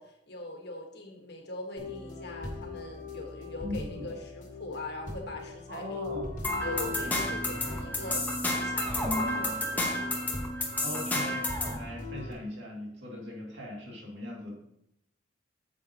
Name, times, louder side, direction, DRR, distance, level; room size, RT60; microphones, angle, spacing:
voice 1, 0.0-6.0 6.6-10.2, left 2 dB, 55° left, 2 dB, 1.6 m, -42 dB
sound 1, 1.8-12.3, left 1 dB, 40° left, 1.7 m, -38 dB
voice 2, 3.6-4.1 5.7-6.3 10.8-14.5, left 1 dB, 60° right, -2 dB, 2.6 m, -40 dB
sound 2, 6.4-11.8, left 1 dB, 10° left, 1.2 m, -31 dB
9.3 x 7.4 x 3.0 m, 0.79 s
head